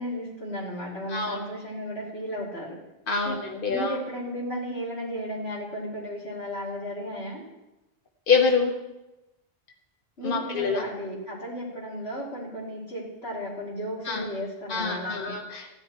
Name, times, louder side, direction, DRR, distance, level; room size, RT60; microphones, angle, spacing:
voice 1, 0.0-2.8 3.2-3.4 3.7-7.4 10.2-15.3, equal, 85° left, -6 dB, 3.7 m, -34 dB
voice 2, 1.1-1.4 3.1-4.0 8.3-8.7 10.2-10.8 14.0-14.3 14.7-15.7, left 5 dB, 60° left, 1 dB, 1.6 m, -25 dB
14.5 x 10.5 x 4.4 m, 0.97 s
omnidirectional pair, 1.0 m